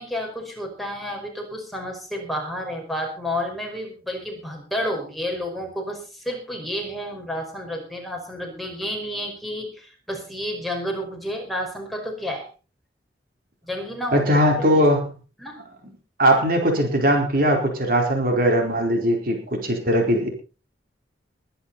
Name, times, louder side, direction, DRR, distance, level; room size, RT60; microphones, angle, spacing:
voice 1, 0.0-12.5 13.7-14.6 15.4-15.6, equal, ahead, 0 dB, 5.1 m, -31 dB
voice 2, 14.1-15.1 16.2-20.3, equal, 50° right, 2 dB, 4.5 m, -20 dB
22.0 x 10.5 x 4.2 m, 0.35 s
head